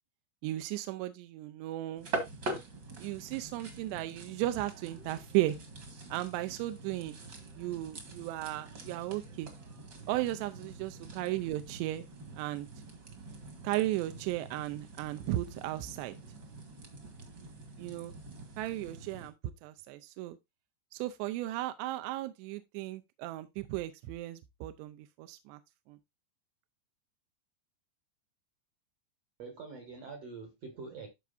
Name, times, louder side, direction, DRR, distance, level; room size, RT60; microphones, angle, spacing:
voice 1, 0.4-2.1 3.0-5.6 6.1-7.2 7.6-9.5 10.1-12.0 12.4-12.7 13.6-16.2 17.8-18.1 18.6-19.3 19.6-20.4 20.9-25.6 25.9-26.0, right 15 dB, 80° right, 2.7 m, -35 dB
sound 1, 2.0-19.3, right 2 dB, 45° right, 1.4 m, -45 dB
voice 2, 29.4-31.1, right 4 dB, 60° right, 1.7 m, -45 dB
13.5 x 4.6 x 2.5 m
omnidirectional pair, 5.1 m